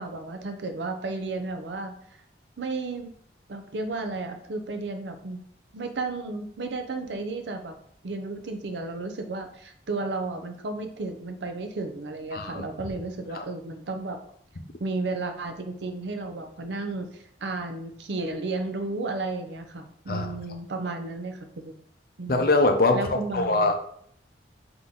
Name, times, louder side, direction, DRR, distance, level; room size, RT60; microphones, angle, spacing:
voice 1, 0.0-2.0 2.6-3.1 3.5-5.4 5.7-7.8 8.0-14.2 14.8-21.7 22.2-22.5 22.9-23.7, right 3 dB, 75° right, 6 dB, 0.6 m, -33 dB
voice 2, 12.3-12.6 13.3-13.4 20.1-20.3 22.3-23.7, left 2 dB, 55° left, 5 dB, 0.6 m, -23 dB
3.9 x 3.0 x 3.6 m, 0.65 s
head